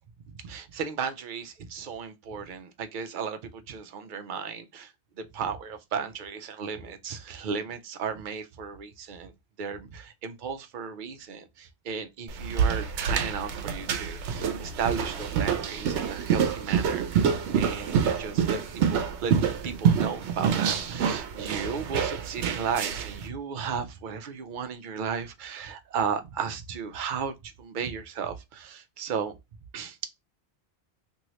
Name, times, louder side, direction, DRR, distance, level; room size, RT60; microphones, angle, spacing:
voice 1, 0.4-4.9 5.3-9.3 9.6-19.3 19.6-29.3 29.7-30.1, right 6 dB, 55° right, 0.6 m, -34 dB
sound 1, 12.3-23.2, right 7 dB, 85° right, 0.9 m, -27 dB
2.9 x 2.7 x 2.9 m
omnidirectional pair, 1.1 m